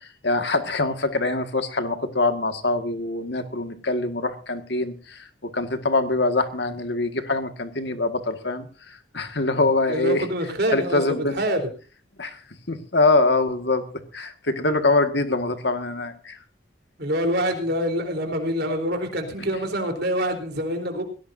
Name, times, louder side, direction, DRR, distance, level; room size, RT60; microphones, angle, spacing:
voice 1, 0.2-5.3 5.5-10.2 10.7-11.3 12.2-12.4 12.7-13.8 14.1-16.4, left 2 dB, 60° left, 7 dB, 1.9 m, -24 dB
voice 2, 9.9-11.0 11.3-11.7 17.0-21.0, equal, 55° right, 5 dB, 3.9 m, -25 dB
20.5 x 17.0 x 2.7 m, 0.36 s
head